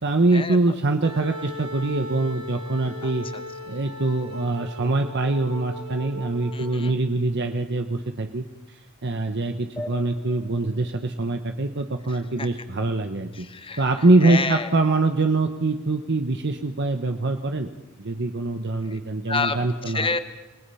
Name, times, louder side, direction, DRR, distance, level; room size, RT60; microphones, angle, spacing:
voice 1, 0.0-3.3 3.7-13.4 13.8-17.7 18.0-20.1, right 2 dB, 55° right, 6 dB, 1.1 m, -24 dB
Wind instrument woodwind instrument, 1.0-7.0, equal, 85° right, 4.1 m, -38 dB
voice 2, 3.0-3.4 6.5-7.0 12.1-12.5 13.3-13.8 14.2-14.7 18.8-19.0 19.3-19.6 19.8-20.2, left 4 dB, 25° left, 9 dB, 1.3 m, -29 dB
sound 1, 9.8-12.7, left 1 dB, 5° left, 3.0 m, -42 dB
29.5 x 19.0 x 5.7 m, 1.1 s
head